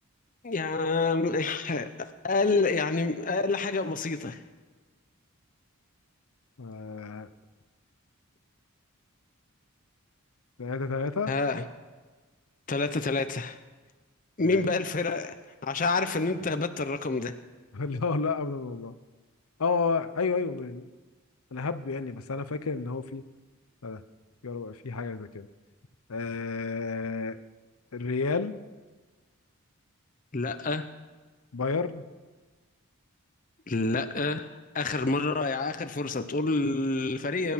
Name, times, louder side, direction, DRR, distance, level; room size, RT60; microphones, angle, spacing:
voice 1, 0.4-4.4 11.3-11.6 12.7-13.6 14.4-15.3 15.6-17.4 30.3-30.9 33.7-37.5, left 3 dB, 35° left, 9 dB, 0.7 m, -28 dB
voice 2, 6.6-7.3 10.6-11.3 14.4-14.6 17.7-18.9 19.6-20.9 21.5-23.2 23.8-24.0 24.4-25.5 26.1-27.4 27.9-28.6 31.5-32.0, left 4 dB, 80° left, 12 dB, 0.8 m, -31 dB
22.5 x 11.0 x 5.8 m, 1.3 s
head